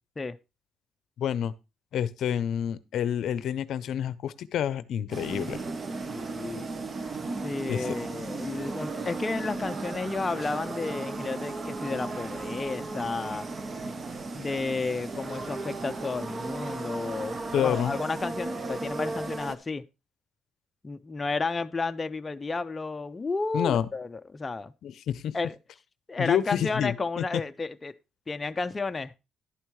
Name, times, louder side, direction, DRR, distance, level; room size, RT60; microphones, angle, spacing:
voice 1, 1.2-1.5 1.9-5.6 7.7-7.9 17.5-17.9 23.5-23.9 24.8-25.3 26.2-27.2, left 9 dB, 70° left, 0.6 m, -28 dB
sound 1, 5.1-19.6, right 3 dB, 35° right, 0.8 m, -35 dB
voice 2, 6.1-6.7 7.4-13.5 14.3-19.8 20.8-24.7 25.3-25.5 26.1-27.9 28.3-29.1, left 3 dB, 25° left, 0.5 m, -32 dB
11.5 x 9.0 x 3.1 m
cardioid pair, 110°, 0 cm